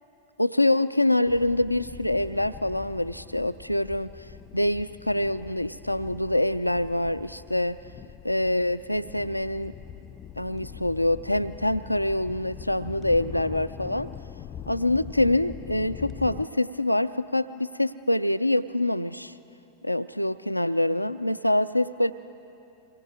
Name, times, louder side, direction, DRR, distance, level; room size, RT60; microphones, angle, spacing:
voice 1, 0.4-4.1 4.5-7.8 8.2-9.7 10.4-14.1 14.7-19.3 19.8-22.1, left 1 dB, 90° left, 13 dB, 0.4 m, -25 dB
sound 1, 1.3-16.5, left 9 dB, 30° left, 0.5 m, -43 dB
26.0 x 20.0 x 4.9 m, 2.9 s
figure-of-eight pair, 90°, 0 cm